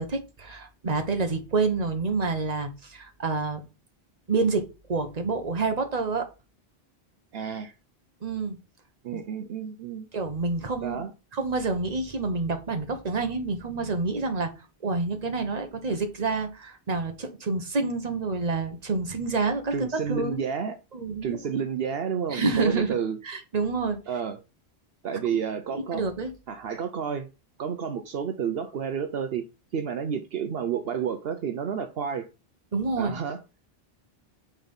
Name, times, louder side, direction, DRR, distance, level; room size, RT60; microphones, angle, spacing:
voice 1, 0.0-3.6 4.3-6.3 8.2-8.6 9.1-9.2 10.1-11.0 11.3-14.5 14.8-20.4 20.9-21.4 22.3-23.0 23.2-24.0 25.9-26.3 32.7-33.2, right 3 dB, 40° right, 1.2 m, -28 dB
voice 2, 7.3-7.8 9.0-10.1 10.8-11.1 19.7-20.8 21.1-23.2 24.1-24.4 25.0-26.0 26.5-27.3 27.6-29.4 29.7-32.3 33.0-33.4, right 7 dB, 70° right, 0.9 m, -30 dB
5.9 x 4.4 x 5.3 m
omnidirectional pair, 1.1 m